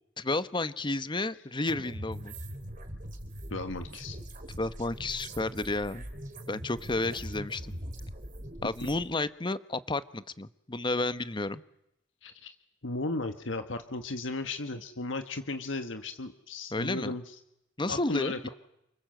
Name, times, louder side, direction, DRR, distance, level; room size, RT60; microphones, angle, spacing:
voice 1, 0.2-2.3 4.6-6.1 6.5-7.7 8.6-11.6 16.7-17.2 17.8-18.5, left 2 dB, 25° left, 14 dB, 1.0 m, -31 dB
sound 1, 1.7-9.0, right 1 dB, 45° right, 3.7 m, -42 dB
voice 2, 3.5-4.2 12.2-12.5 12.8-17.2 17.9-18.5, left 2 dB, 70° left, 8 dB, 1.5 m, -35 dB
29.0 x 25.5 x 7.8 m, 0.82 s
head